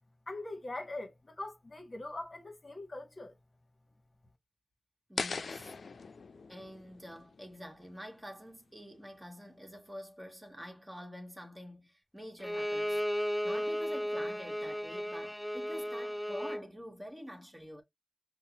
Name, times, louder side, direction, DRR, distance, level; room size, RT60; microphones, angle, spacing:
voice 1, 0.3-3.3, left 2 dB, 40° left, 1.1 m, -42 dB
voice 2, 5.1-5.7 6.5-13.0 13.4-17.8, equal, 15° right, 1.3 m, -47 dB
sound 1, 5.2-8.2, left 4 dB, 75° left, 0.4 m, -41 dB
Bowed string instrument, 12.4-16.7, equal, 5° left, 0.3 m, -34 dB
5.6 x 2.1 x 2.8 m
wide cardioid pair, 75°, 0 cm